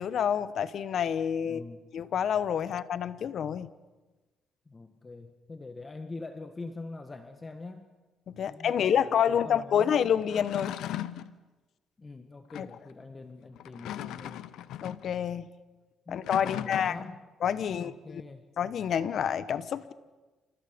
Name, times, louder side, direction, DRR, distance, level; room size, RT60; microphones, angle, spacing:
voice 1, 0.0-1.6 1.9-3.7 8.3-10.7 12.6-12.7 14.8-15.5 16.1-17.0 17.4-18.2 18.6-19.9, left 8 dB, 65° left, 14 dB, 1.1 m, -28 dB
voice 2, 1.4-1.8 4.6-7.9 8.5-10.0 12.0-14.4 16.1-17.2 17.6-18.5, left 3 dB, 25° left, 7 dB, 1.6 m, -44 dB
sound 1, 10.2-11.3 12.5-12.8 13.6-15.1 16.1-17.2, left 12 dB, 85° left, 0.8 m, -38 dB
29.0 x 28.0 x 5.3 m, 1.2 s
cardioid pair, 90°, 0 cm